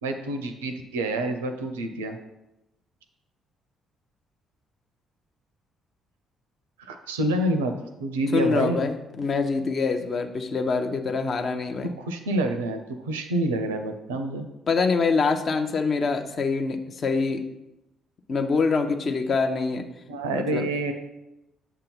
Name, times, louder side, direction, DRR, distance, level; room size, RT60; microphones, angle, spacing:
voice 1, 0.0-2.2 6.8-7.7 8.0-8.9 12.0-14.5 20.1-20.9, right 1 dB, 75° right, 7 dB, 0.5 m, -27 dB
voice 2, 8.3-11.9 14.7-17.4 18.3-19.9 20.3-20.7, left 4 dB, 45° left, 6 dB, 0.6 m, -25 dB
6.9 x 2.8 x 5.4 m, 0.91 s
figure-of-eight pair, 45°, 0 cm